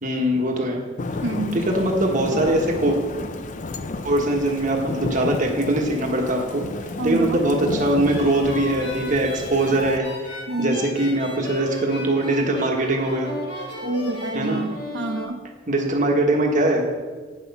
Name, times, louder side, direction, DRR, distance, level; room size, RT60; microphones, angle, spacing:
voice 1, 0.0-0.8 1.5-3.0 4.0-6.7 7.0-13.3 14.3-14.6 15.7-16.8, right 1 dB, 45° right, 1 dB, 1.4 m, -22 dB
Thunder / Rain, 1.0-10.0, left 3 dB, 40° left, 0.5 m, -32 dB
voice 2, 1.2-1.6 7.0-7.5 10.5-10.8 13.8-15.4, right 2 dB, 80° right, 4 dB, 1.0 m, -27 dB
sound 1, 8.0-15.2, left 1 dB, 65° left, 1.5 m, -35 dB
9.4 x 6.2 x 5.5 m, 1.5 s
head